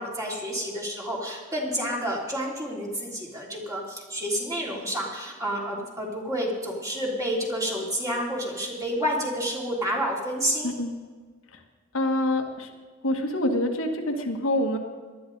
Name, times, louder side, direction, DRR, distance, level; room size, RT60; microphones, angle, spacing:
voice 1, 0.0-10.7, equal, 15° right, -3 dB, 3.1 m, -29 dB
voice 2, 10.6-11.0 11.5-11.6 11.9-12.7 13.0-14.8, left 1 dB, 75° left, 2 dB, 1.6 m, -26 dB
19.0 x 12.5 x 4.0 m, 1.4 s
head